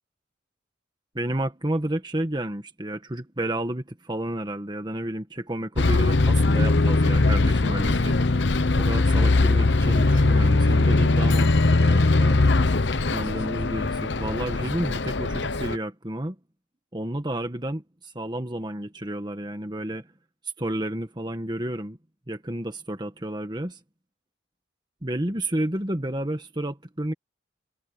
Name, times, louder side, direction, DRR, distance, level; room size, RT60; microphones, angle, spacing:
voice 1, 1.1-8.2 8.8-12.4 13.1-16.4 16.9-20.1 20.6-22.0 22.3-23.8 25.0-27.1, right 1 dB, 25° right, 1.6 m, -31 dB
Bus, 5.8-15.8, left 2 dB, 65° left, 0.9 m, -20 dB
head